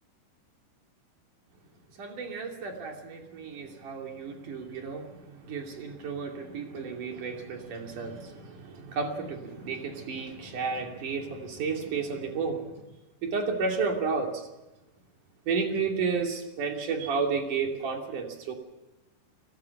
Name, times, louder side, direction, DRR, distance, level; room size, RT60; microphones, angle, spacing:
voice 1, 2.0-5.0 5.5-12.6 13.2-14.3 15.5-18.5, right 5 dB, 50° right, 2 dB, 4.1 m, -32 dB
30.0 x 18.5 x 6.0 m, 1.0 s
omnidirectional pair, 5.1 m